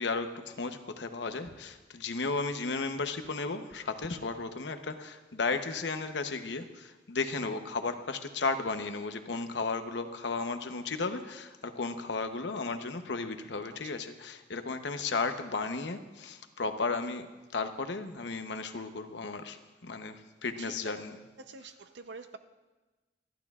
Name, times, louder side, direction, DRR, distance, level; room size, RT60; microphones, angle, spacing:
voice 1, 0.0-17.3 17.5-21.1, left 4 dB, 75° left, 8 dB, 0.8 m, -34 dB
voice 2, 13.7-14.0 14.9-15.2 20.6-21.1 21.4-22.4, right 3 dB, 75° right, 9 dB, 0.7 m, -47 dB
26.5 x 11.5 x 2.4 m, 1.2 s
head